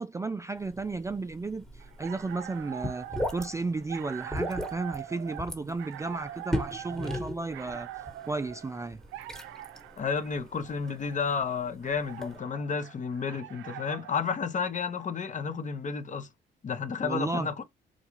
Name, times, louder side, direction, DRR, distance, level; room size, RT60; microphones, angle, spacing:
voice 1, 0.0-1.6 2.0-3.1 3.3-7.9 8.3-9.0 17.0-17.5, right 3 dB, 15° right, 0.3 m, -33 dB
sound 1, 0.6-12.4, left 1 dB, 5° left, 1.2 m, -39 dB
sound 2, 1.8-14.2, right 13 dB, 85° right, 0.5 m, -43 dB
voice 2, 10.0-16.3 16.6-17.6, left 5 dB, 40° left, 0.8 m, -31 dB
3.8 x 2.3 x 3.0 m
cardioid pair, 85°, 20 cm